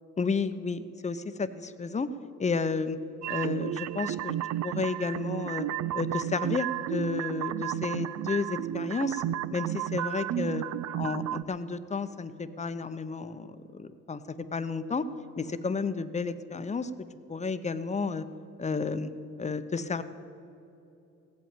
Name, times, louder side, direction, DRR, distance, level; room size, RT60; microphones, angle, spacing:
voice 1, 0.2-2.1 2.4-3.0 3.3-4.4 4.6-5.7 5.9-9.2 9.5-10.6 11.0-15.1 15.4-16.9 17.3-18.3 18.6-19.1 19.4-20.0, left 4 dB, 25° left, 12 dB, 0.8 m, -32 dB
sound 1, 3.2-11.4, right 13 dB, 65° right, 0.5 m, -32 dB
16.0 x 8.5 x 9.0 m, 2.8 s
cardioid pair, 90°, 30 cm